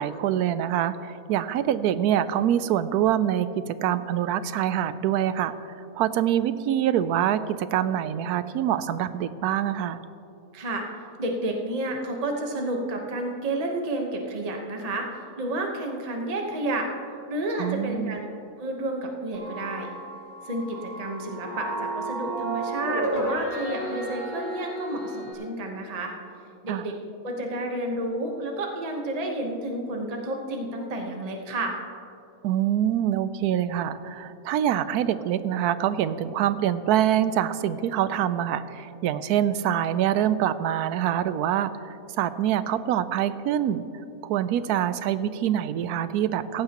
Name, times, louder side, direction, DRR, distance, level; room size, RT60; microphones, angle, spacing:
voice 1, 0.0-10.0 17.6-18.2 26.7-26.9 32.4-43.8 44.2-46.6, right 10 dB, 85° right, 14 dB, 1.1 m, -25 dB
voice 2, 10.5-10.8 11.2-16.9 17.3-18.2 18.6-19.9 20.4-26.1 26.6-26.9 27.2-31.8, right 1 dB, 30° right, 1 dB, 1.1 m, -30 dB
sound 1, 19.3-25.3, right 1 dB, 60° left, 3.3 m, -32 dB
17.0 x 15.5 x 3.0 m, 2.7 s
omnidirectional pair, 1.6 m